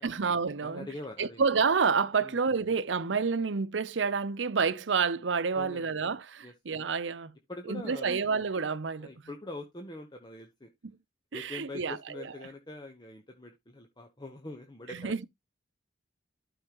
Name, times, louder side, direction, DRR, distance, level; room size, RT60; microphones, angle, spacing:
voice 1, 0.0-0.9 1.2-7.3 7.7-9.1 10.8-10.9 11.3-12.3 15.0-15.2, right 5 dB, 85° right, 0.7 m, -29 dB
voice 2, 0.6-1.4 2.2-2.4 5.5-6.0 6.4-6.5 7.5-8.2 9.0-10.7 11.3-15.1, left 2 dB, 25° left, 1.1 m, -43 dB
12.5 x 5.6 x 3.0 m
head